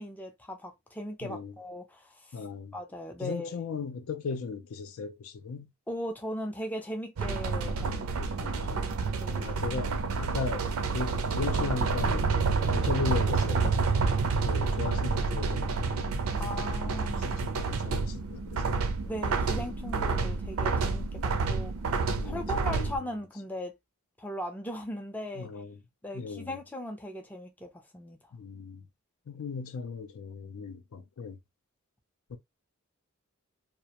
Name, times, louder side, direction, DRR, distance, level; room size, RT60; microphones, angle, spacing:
voice 1, 0.0-2.4 2.7-3.6 5.9-9.8 16.4-17.3 19.0-21.7 22.2-23.7 24.2-25.5 26.0-28.2, equal, 10° left, 0.4 m, -39 dB
voice 2, 1.2-1.5 2.3-2.7 3.2-5.7 7.7-8.8 9.4-10.7 10.9-12.3 12.7-13.8 14.4-16.1 16.8-18.8 19.5-19.6 19.9-20.2 22.2-23.0 25.4-25.8 26.1-26.6 28.3-28.9 29.3-31.4 32.3-32.4, left 5 dB, 75° left, 0.4 m, -37 dB
sound 1, 7.2-23.0, right 4 dB, 75° right, 0.4 m, -29 dB
2.4 x 2.0 x 2.8 m
head